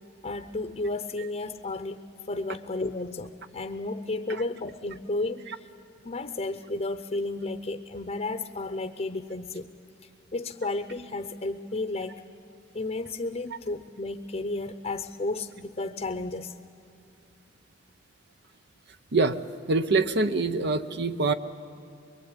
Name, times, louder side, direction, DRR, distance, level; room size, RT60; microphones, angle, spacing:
voice 1, 0.2-5.7 6.0-9.7 10.3-12.2 12.7-16.5, left 2 dB, 35° left, 8 dB, 0.8 m, -33 dB
voice 2, 19.7-21.3, right 3 dB, 60° right, 10 dB, 0.8 m, -24 dB
24.5 x 22.5 x 9.8 m, 2.7 s
head